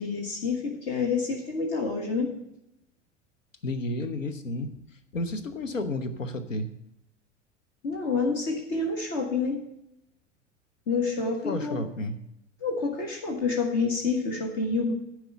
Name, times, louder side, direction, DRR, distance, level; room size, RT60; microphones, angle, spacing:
voice 1, 0.0-2.3 7.8-9.6 10.9-11.8 12.6-14.9, left 4 dB, 45° left, 1 dB, 1.6 m, -28 dB
voice 2, 3.6-4.8 5.1-6.7 11.5-12.2, left 2 dB, 80° left, 10 dB, 0.9 m, -31 dB
11.5 x 4.7 x 6.9 m, 0.83 s
figure-of-eight pair, 85°, 38 cm